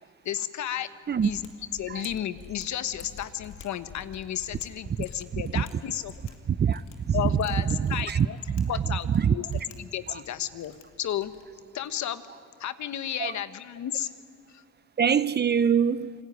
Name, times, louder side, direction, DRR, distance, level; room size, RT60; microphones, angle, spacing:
voice 1, 0.2-0.9 1.2-6.1 7.1-8.4 8.7-9.4 9.8-11.3 11.7-12.2 12.6-14.1 14.5-14.6, left 10 dB, 70° left, 1.3 m, -33 dB
Mechanisms, 1.1-11.6, left 8 dB, 90° left, 2.6 m, -49 dB
voice 2, 5.3-5.6 6.5-7.4 7.7-8.3 8.5-9.4 10.1-10.2 13.2-13.3 15.0-16.1, right 7 dB, 35° right, 0.7 m, -24 dB
28.5 x 20.5 x 9.4 m
cardioid pair, 90°, 30 cm